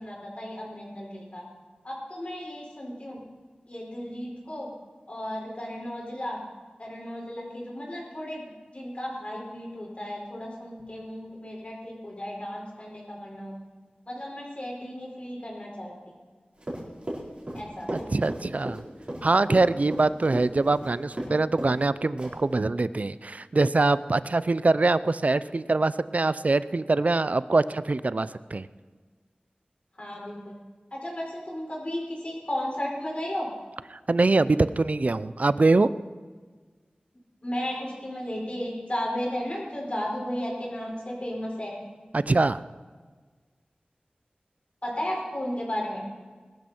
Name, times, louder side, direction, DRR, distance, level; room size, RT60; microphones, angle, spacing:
voice 1, 0.0-1.4 1.8-3.2 3.7-4.7 5.1-6.4 6.8-13.5 14.1-16.1 17.5-17.9 30.0-30.6 30.9-33.5 37.4-41.7 44.8-46.0, equal, 45° left, -2 dB, 5.3 m, -34 dB
Run, 16.6-21.3 21.6-21.8 22.2-22.5, right 1 dB, 40° right, 4.3 m, -34 dB
voice 2, 17.9-18.8 19.2-28.7 33.9-35.9 42.1-42.6, right 3 dB, 55° right, 15 dB, 0.5 m, -23 dB
21.0 x 12.5 x 4.5 m, 1.5 s
wide cardioid pair, 70°, 3 cm